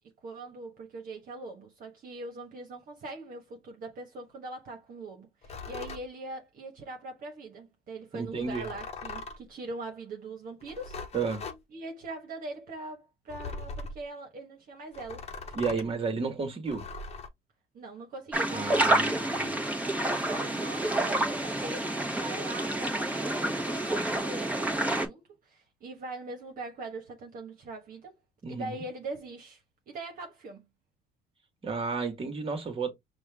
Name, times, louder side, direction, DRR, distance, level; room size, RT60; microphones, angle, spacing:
voice 1, 0.2-11.0 11.7-15.3 15.7-15.9 17.7-19.3 20.3-28.2 28.5-30.7, right 2 dB, 55° right, 1.3 m, -42 dB
Heater grill scratches, 5.4-6.1 8.4-9.5 10.6-11.6 13.3-14.0 14.9-15.9 16.7-17.3, left 4 dB, 40° left, 1.0 m, -40 dB
voice 2, 8.1-8.7 11.1-11.4 15.5-16.8 18.5-19.1 19.3-19.5 28.4-28.8 31.6-32.9, right 4 dB, 35° right, 1.7 m, -32 dB
sound 1, 18.3-25.1, right 1 dB, 10° right, 1.3 m, -28 dB
5.5 x 2.6 x 3.5 m
cardioid pair, 110°, 17 cm